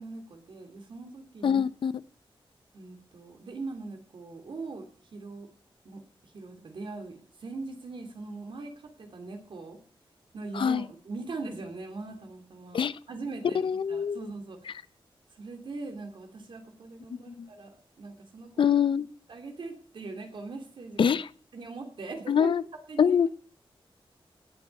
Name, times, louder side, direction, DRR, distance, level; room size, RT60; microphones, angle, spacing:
voice 1, 0.0-1.6 2.7-4.9 5.1-5.5 5.8-6.0 6.3-9.8 10.3-12.8 13.1-14.6 15.4-17.7 18.0-18.8 19.3-21.2 21.5-22.5 22.9-23.2, right 3 dB, 60° right, 2.7 m, -41 dB
voice 2, 1.4-2.0 10.5-10.9 12.7-13.0 13.5-14.2 17.3-17.5 18.6-19.1 21.0-21.3 22.3-22.6 23.0-23.3, left 7 dB, 65° left, 0.5 m, -24 dB
17.5 x 8.0 x 5.3 m
wide cardioid pair, 180°, 9 cm